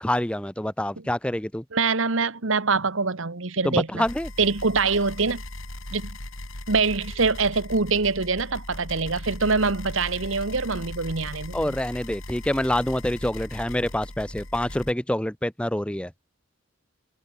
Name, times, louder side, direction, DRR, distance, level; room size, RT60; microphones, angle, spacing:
voice 1, 0.0-1.6 3.6-4.3 11.5-16.1, left 1 dB, 5° left, 0.8 m, -26 dB
voice 2, 1.7-4.0 4.4-5.4 5.9-6.2 6.7-11.7, right 4 dB, 70° right, 1.5 m, -24 dB
sound 1, 4.0-14.9, left 1 dB, 75° left, 6.2 m, -38 dB
head